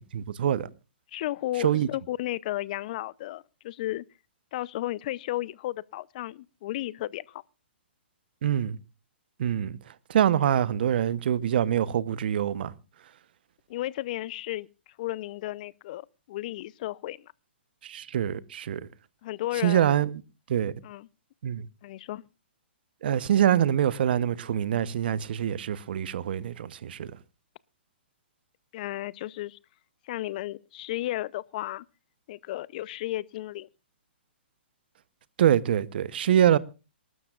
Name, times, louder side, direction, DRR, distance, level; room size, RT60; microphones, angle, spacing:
voice 1, 0.1-0.7 1.6-1.9 8.4-8.8 9.4-12.7 17.8-18.9 19.6-20.2 20.5-20.7 21.4-21.6 23.0-27.1 35.4-36.6, right 10 dB, 60° right, 1.0 m, -25 dB
voice 2, 1.1-4.0 4.5-7.4 13.7-14.7 15.0-17.3 19.2-19.8 20.8-21.1 21.8-22.2 28.7-29.6 30.0-31.9 32.3-33.7, left 15 dB, 45° left, 0.6 m, -34 dB
26.5 x 12.5 x 2.4 m
hypercardioid pair, 130°, 6 cm